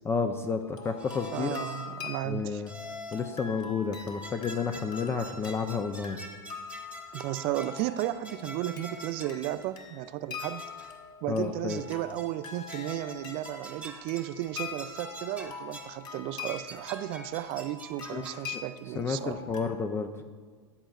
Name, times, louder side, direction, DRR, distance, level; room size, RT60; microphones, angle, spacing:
voice 1, 0.0-1.6 2.2-2.7 3.1-6.2 11.3-11.8 18.1-18.2 18.5-18.6 19.0-20.1, left 5 dB, 20° left, 7 dB, 0.4 m, -31 dB
sound 1, 0.6-19.6, left 6 dB, 35° left, 1.2 m, -44 dB
sound 2, 1.0-2.0 2.7-3.4 4.0-9.7 10.4-11.0 11.7-12.4 12.7-16.0 16.4-18.5, equal, 10° right, 1.0 m, -45 dB
voice 2, 1.3-2.6 7.1-10.7 11.2-19.4, right 14 dB, 40° right, 14 dB, 0.4 m, -34 dB
14.0 x 8.8 x 2.4 m, 1.5 s
hypercardioid pair, 110°, 14 cm